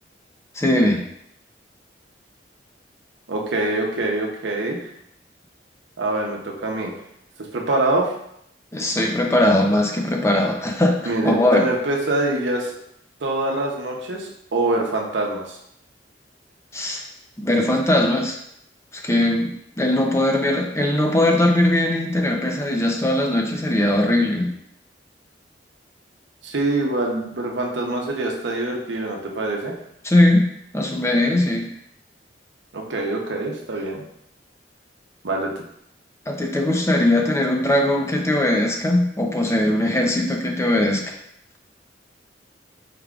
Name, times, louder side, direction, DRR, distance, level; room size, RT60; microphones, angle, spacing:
voice 1, 0.5-1.0 8.7-11.0 11.2-11.6 16.7-17.0 17.4-18.4 18.9-19.5 19.8-24.5 30.0-30.5 30.7-31.7 36.3-41.2, left 1 dB, 15° left, 1 dB, 0.6 m, -20 dB
voice 2, 3.3-4.9 6.0-6.9 7.5-8.1 11.1-12.8 13.2-15.6 26.4-29.7 32.7-34.0 35.2-35.6, right 2 dB, 80° right, 0 dB, 0.8 m, -24 dB
4.8 x 3.6 x 2.4 m, 0.74 s
head